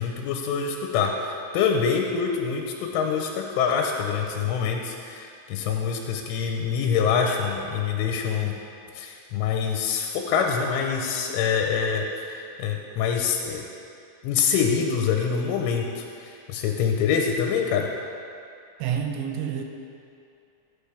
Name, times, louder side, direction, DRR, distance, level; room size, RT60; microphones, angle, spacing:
voice 1, 0.0-8.5 9.0-13.6 14.2-17.9, left 6 dB, 90° left, 2 dB, 3.1 m, -25 dB
voice 2, 18.8-19.6, right 8 dB, 80° right, 3 dB, 2.8 m, -28 dB
16.5 x 8.7 x 3.4 m, 2.5 s
omnidirectional pair, 5.6 m